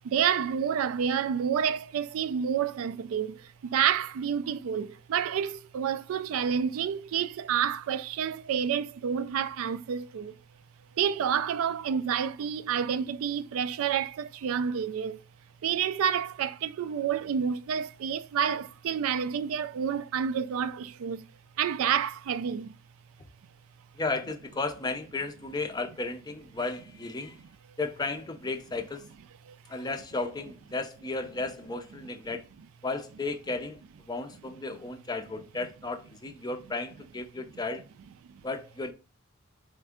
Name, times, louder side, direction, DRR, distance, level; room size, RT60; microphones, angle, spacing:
voice 1, 0.1-3.3 3.7-10.3 11.0-15.2 15.6-21.2 21.6-22.7, right 8 dB, 80° right, 0.3 m, -29 dB
voice 2, 24.0-27.4 27.8-29.0 29.7-32.4 32.8-37.8 38.4-38.9, left 3 dB, 20° left, 0.4 m, -34 dB
4.3 x 3.4 x 3.5 m
head